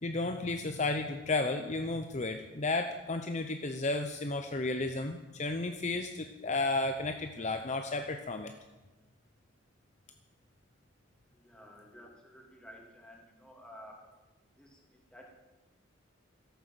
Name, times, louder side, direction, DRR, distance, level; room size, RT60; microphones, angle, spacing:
voice 1, 0.0-8.5, left 2 dB, 35° left, 6 dB, 0.7 m, -33 dB
voice 2, 11.3-14.0 14.6-15.3, equal, 5° left, -1 dB, 3.0 m, -53 dB
13.5 x 11.5 x 7.6 m, 1.2 s
head